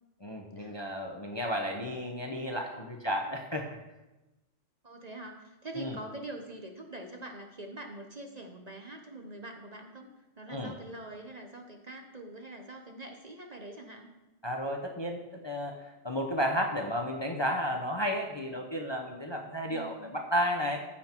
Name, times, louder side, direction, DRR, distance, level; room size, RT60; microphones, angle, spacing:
voice 1, 0.2-3.7 5.8-6.0 10.5-10.7 14.4-20.8, equal, 25° left, 2 dB, 0.8 m, -33 dB
voice 2, 4.8-10.1 10.4-14.1 19.7-20.2, right 2 dB, 35° right, 3 dB, 0.9 m, -44 dB
14.5 x 5.8 x 4.5 m, 1.0 s
omnidirectional pair, 1.3 m